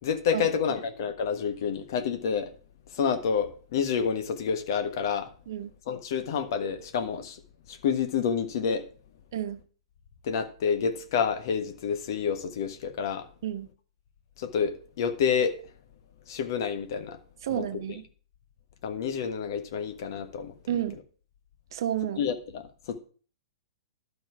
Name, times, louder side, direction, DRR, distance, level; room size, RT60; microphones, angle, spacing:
voice 1, 0.0-2.5 2.9-5.3 5.9-7.4 7.7-8.8 10.2-13.3 14.4-15.6 16.3-17.2 17.5-17.6 18.8-20.5 22.2-23.0, left 6 dB, 55° left, 1.4 m, -28 dB
voice 2, 17.4-18.0 20.7-21.0 21.7-22.2, right 11 dB, 60° right, 1.1 m, -30 dB
12.0 x 5.5 x 6.0 m
figure-of-eight pair, 110°, 3 cm